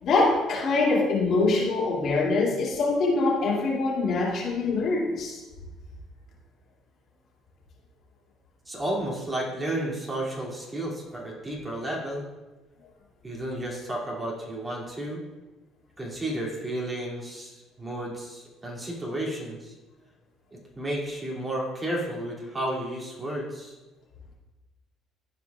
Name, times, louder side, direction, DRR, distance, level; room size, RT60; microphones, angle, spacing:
voice 1, 0.0-5.4, left 3 dB, 55° left, -4 dB, 2.5 m, -24 dB
voice 2, 8.7-12.2 13.2-15.2 16.0-19.7 20.8-23.8, right 1 dB, 20° right, -3 dB, 2.4 m, -32 dB
13.5 x 4.8 x 2.3 m, 1.1 s
hypercardioid pair, 70°, 0 cm